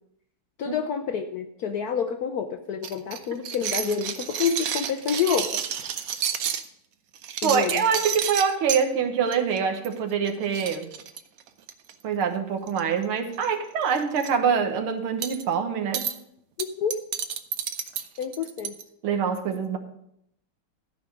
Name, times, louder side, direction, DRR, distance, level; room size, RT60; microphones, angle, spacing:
voice 1, 0.6-5.6 7.4-7.8 16.6-16.9 18.2-18.7, left 7 dB, 70° left, 7 dB, 0.9 m, -28 dB
sound 1, 2.8-6.7 7.2-8.8 9.3-9.6 9.8-10.0 10.3-10.4 10.5-11.9 12.7-13.0 13.3-13.5 13.9-14.3 15.2-15.4 15.9-16.1 16.6-18.8, right 8 dB, 70° right, 0.8 m, -30 dB
voice 2, 7.4-10.9 12.0-16.1 19.0-19.8, right 6 dB, 90° right, 5 dB, 2.0 m, -25 dB
13.0 x 5.3 x 6.2 m, 0.75 s
omnidirectional pair, 2.3 m